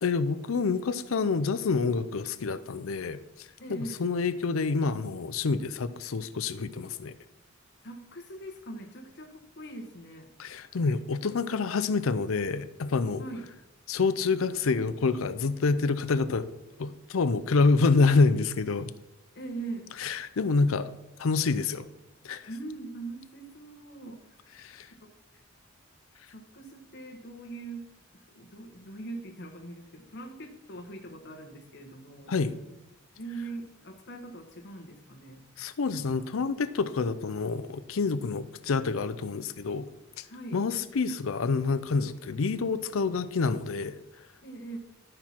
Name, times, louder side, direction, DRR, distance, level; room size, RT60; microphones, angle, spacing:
voice 1, 0.0-7.1 10.4-13.2 13.9-16.5 16.8-18.9 20.0-20.9 21.2-21.9 22.2-22.5 24.6-24.9 32.3-32.5 35.6-39.9 40.2-40.3 40.5-44.0, left 4 dB, 80° left, 12 dB, 0.5 m, -27 dB
voice 2, 3.6-4.0 7.8-10.3 13.2-13.5 19.3-19.9 22.5-24.6 25.0-25.1 26.3-32.3 33.2-35.4 40.3-40.6 44.4-44.8, right 2 dB, 55° left, 4 dB, 1.3 m, -42 dB
12.0 x 4.5 x 5.8 m, 0.89 s
head